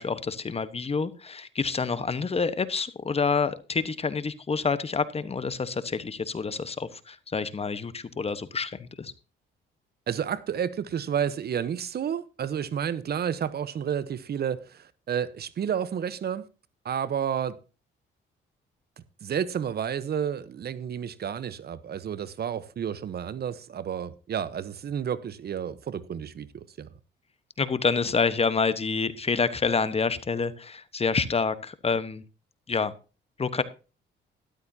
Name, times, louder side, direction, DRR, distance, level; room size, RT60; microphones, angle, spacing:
voice 1, 0.0-9.1 27.6-32.2 32.7-32.9 33.4-33.6, left 5 dB, 30° left, 1.2 m, -28 dB
voice 2, 10.1-16.5 16.8-17.6 19.2-26.9, right 8 dB, 55° right, 1.0 m, -31 dB
13.0 x 12.0 x 2.8 m
cardioid pair, 90°, 20 cm